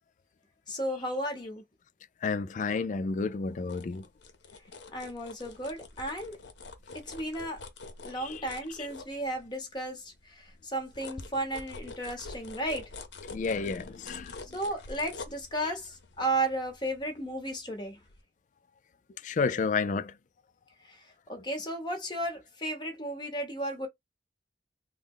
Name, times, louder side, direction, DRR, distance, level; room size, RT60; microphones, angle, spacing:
voice 1, 0.7-1.6 4.9-6.4 7.0-7.6 8.0-12.8 14.5-18.0 20.9-21.0 21.3-23.9, right 1 dB, 25° left, 1.0 m, -34 dB
voice 2, 2.2-4.1 8.1-8.5 8.8-8.9 12.0-12.1 13.3-14.4 19.2-20.2, left 4 dB, 45° left, 0.3 m, -31 dB
sound 1, 3.4-9.7 10.1-17.7 18.1-18.2, left 3 dB, 80° left, 0.7 m, -46 dB
3.4 x 2.1 x 3.6 m
head